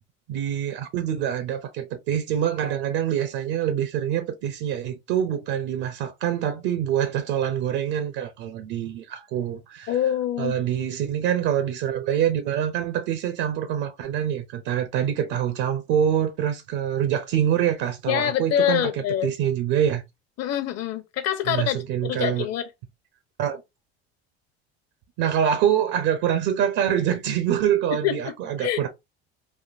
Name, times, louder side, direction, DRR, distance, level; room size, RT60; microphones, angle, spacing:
voice 1, 0.3-9.9 10.4-20.0 21.5-22.5 23.4-23.6 25.2-28.9, right 9 dB, 65° right, 0.6 m, -25 dB
voice 2, 9.9-10.5 18.1-19.3 20.4-22.7 27.9-28.2 28.6-28.8, left 10 dB, 50° left, 0.8 m, -25 dB
3.5 x 2.2 x 2.5 m
supercardioid pair, 85°, 32 cm